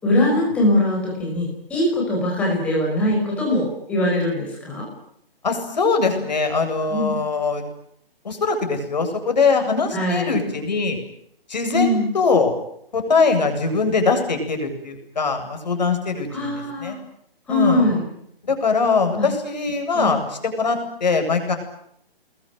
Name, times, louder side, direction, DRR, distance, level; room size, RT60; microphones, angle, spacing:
voice 1, 0.0-4.9 6.9-7.2 9.9-10.3 11.7-12.1 16.3-17.0 17.5-18.0 19.2-19.3 19.9-20.1, left 1 dB, 5° left, -1 dB, 5.2 m, -21 dB
voice 2, 5.4-7.7 8.2-11.0 11.5-12.5 12.9-17.0 17.5-17.9 18.5-21.5, left 4 dB, 45° left, 6 dB, 8.0 m, -22 dB
29.0 x 22.0 x 9.3 m, 0.73 s
hypercardioid pair, 180°, 29 cm